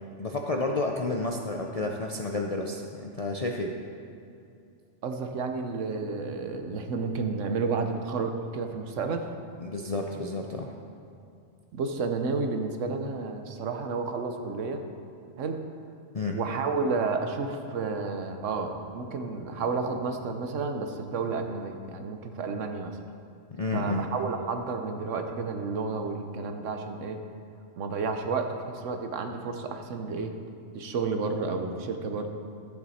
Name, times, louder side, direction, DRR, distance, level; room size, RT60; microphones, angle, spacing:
voice 1, 0.2-3.7 9.6-10.7 16.1-16.4 23.6-24.1, left 2 dB, 50° left, 1 dB, 0.4 m, -30 dB
voice 2, 5.0-9.3 11.7-14.8 15.4-15.6 16.3-23.0 23.7-27.2 27.8-30.3 30.7-32.3, right 4 dB, 70° right, 6 dB, 1.1 m, -31 dB
12.0 x 8.6 x 4.2 m, 2.5 s
omnidirectional pair, 1.4 m